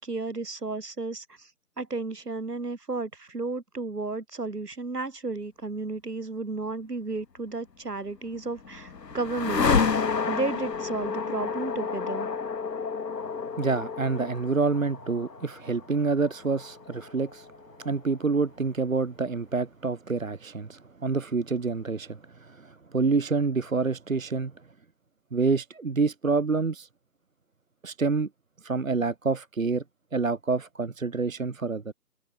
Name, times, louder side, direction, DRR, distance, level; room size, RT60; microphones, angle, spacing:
voice 1, 0.0-1.5 1.8-10.0 10.3-12.3, right 3 dB, 75° right, 2.6 m, -33 dB
sound 1, 8.1-18.2, left 5 dB, 80° left, 1.1 m, -30 dB
voice 2, 13.6-17.5 17.8-24.5 25.3-26.9 27.8-28.3 28.6-29.8 30.1-31.9, right 4 dB, 55° right, 0.9 m, -27 dB
figure-of-eight pair, 170°, 48 cm